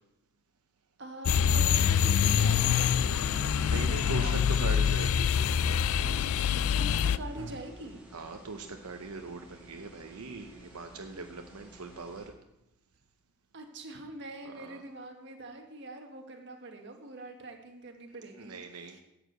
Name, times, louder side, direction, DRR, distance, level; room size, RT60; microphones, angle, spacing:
voice 1, 1.0-4.5 6.7-8.1 13.5-19.0, right 2 dB, 55° right, 3 dB, 1.5 m, -44 dB
sound 1, 1.3-7.2, left 8 dB, 70° left, 0.3 m, -25 dB
sound 2, 1.4-7.6, right 2 dB, 70° right, 1.1 m, -45 dB
sound 3, 2.2-12.3, right 1 dB, 10° right, 3.8 m, -54 dB
voice 2, 3.7-5.3 8.1-12.2 14.4-14.8 18.4-19.0, right 3 dB, 90° right, 4 dB, 0.8 m, -40 dB
11.0 x 5.0 x 7.7 m, 0.89 s
head